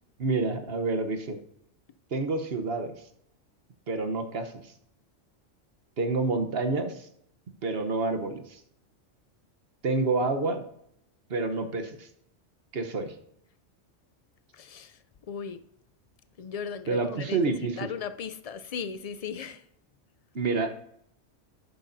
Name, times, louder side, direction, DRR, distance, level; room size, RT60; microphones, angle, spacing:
voice 1, 0.2-1.4 2.1-2.9 3.9-4.7 6.0-7.1 7.6-8.6 9.8-10.6 11.3-12.1 12.7-13.1 16.9-17.8 20.3-20.7, right 3 dB, 55° right, 1.2 m, -28 dB
voice 2, 14.5-15.0 15.3-15.6 16.4-19.6, left 7 dB, 65° left, 0.3 m, -37 dB
11.0 x 9.3 x 2.7 m
omnidirectional pair, 1.3 m